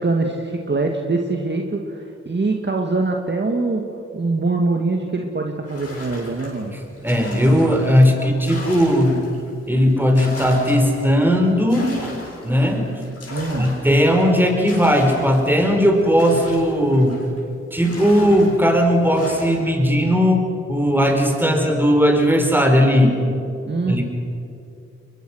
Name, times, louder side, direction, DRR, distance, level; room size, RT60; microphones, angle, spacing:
voice 1, 0.0-3.9 4.1-6.7 13.3-13.7 23.7-24.0, right 3 dB, 40° right, 2 dB, 2.1 m, -23 dB
sound 1, 5.7-9.5 9.9-17.4 17.8-19.8, left 2 dB, 55° left, 6.9 m, -37 dB
voice 2, 7.0-9.1 9.7-12.1 12.4-12.9 13.6-17.2 17.7-23.2 23.9-24.0, equal, 5° right, 3 dB, 5.1 m, -17 dB
23.0 x 21.5 x 6.5 m, 2.7 s
cardioid pair, 50°, 29 cm